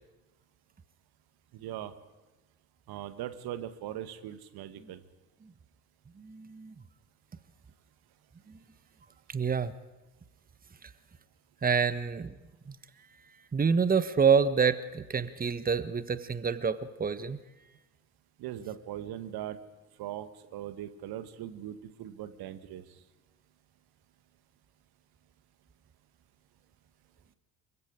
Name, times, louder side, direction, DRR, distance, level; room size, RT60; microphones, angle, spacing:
voice 1, 1.5-1.9 2.9-5.0 18.4-19.6 20.0-22.8, right 11 dB, 55° right, 11 dB, 1.9 m, -40 dB
voice 2, 6.2-6.7 8.5-8.6 9.3-9.7 10.8-10.9 11.6-12.3 12.7-12.8 13.5-17.4, right 6 dB, 20° right, 13 dB, 1.3 m, -27 dB
28.0 x 24.0 x 5.0 m, 1.1 s
figure-of-eight pair, 60°, 44 cm